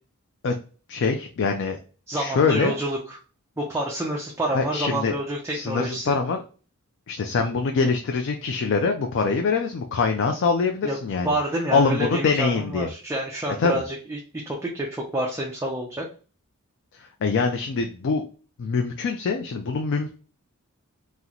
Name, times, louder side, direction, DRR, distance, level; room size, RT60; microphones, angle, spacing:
voice 1, 0.9-1.8 2.1-2.7 4.5-5.1 5.5-6.4 7.1-11.3 11.7-12.9 13.6-13.8 17.2-18.2 18.6-20.1, left 4 dB, 55° left, 4 dB, 0.3 m, -24 dB
voice 2, 2.1-3.2 3.6-6.1 10.8-11.0 11.2-16.1, right 1 dB, 10° right, -2 dB, 0.4 m, -28 dB
2.9 x 2.1 x 3.7 m, 0.37 s
head